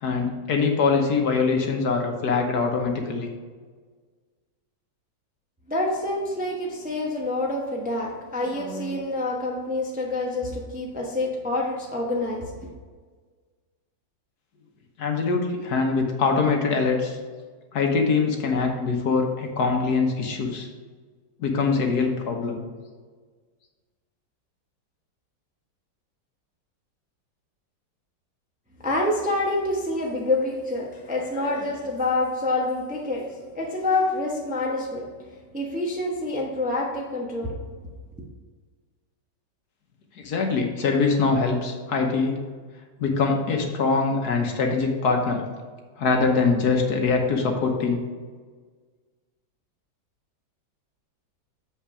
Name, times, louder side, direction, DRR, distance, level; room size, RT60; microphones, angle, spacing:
voice 1, 0.0-3.3 15.0-17.2 17.7-20.7 21.4-22.6 40.1-42.4 43.0-45.4 46.0-48.0, left 4 dB, 65° left, 1.5 m, -23 dB
voice 2, 5.7-12.5 28.8-37.7, left 2 dB, 5° right, 0.8 m, -27 dB
7.3 x 5.7 x 4.9 m
omnidirectional pair, 1.9 m